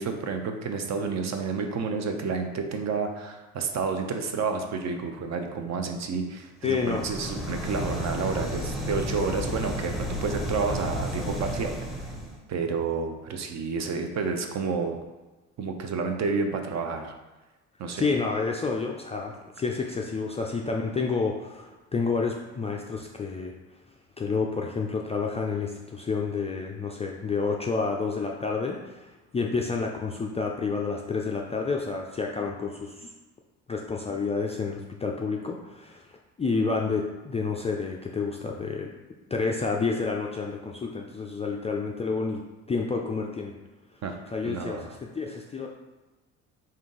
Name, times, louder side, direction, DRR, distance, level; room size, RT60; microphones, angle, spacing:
voice 1, 0.0-11.7 12.5-15.0 15.6-17.1 17.8-18.1 44.0-44.2 44.4-44.9, right 4 dB, 45° right, 5 dB, 0.6 m, -30 dB
voice 2, 6.6-7.1 17.9-23.5 24.2-33.1 33.7-36.0 36.4-38.9 39.3-42.4 42.7-43.5 44.3-45.7, left 4 dB, 20° left, 0 dB, 0.3 m, -29 dB
sound 1, 6.7-12.4, equal, ahead, 0.8 m, -32 dB
3.7 x 2.8 x 3.6 m, 1.1 s
hypercardioid pair, 65°, 39 cm